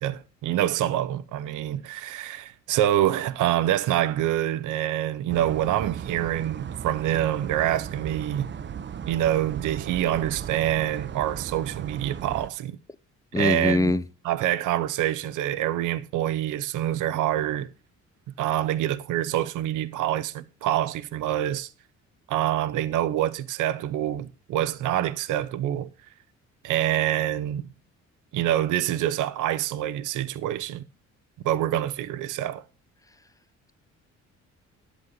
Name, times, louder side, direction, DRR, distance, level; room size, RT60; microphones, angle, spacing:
voice 1, 0.0-8.5 9.1-12.8 13.4-13.9 14.2-17.7 18.4-21.7 22.3-25.9 26.6-27.7 28.3-30.8 31.4-32.6, right 12 dB, 80° right, 0.7 m, -26 dB
sound 1, 5.3-12.5, right 8 dB, 40° right, 0.6 m, -36 dB
voice 2, 13.3-14.0, left 2 dB, 10° left, 0.5 m, -22 dB
10.5 x 8.1 x 3.9 m
cardioid pair, 90°, 30 cm